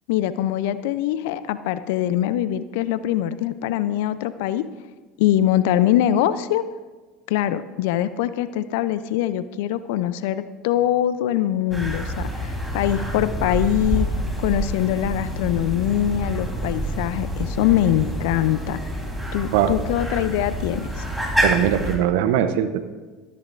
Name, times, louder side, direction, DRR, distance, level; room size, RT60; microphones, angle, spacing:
voice 1, 0.1-4.6 5.2-6.6 7.3-14.1 14.4-18.8 19.3-21.0, left 12 dB, 70° left, 14 dB, 0.5 m, -23 dB
sound 1, 11.7-22.0, right 1 dB, 5° right, 3.6 m, -27 dB
voice 2, 21.4-22.8, right 10 dB, 70° right, 11 dB, 0.7 m, -20 dB
14.0 x 13.5 x 2.6 m, 1.3 s
hypercardioid pair, 75°, 0 cm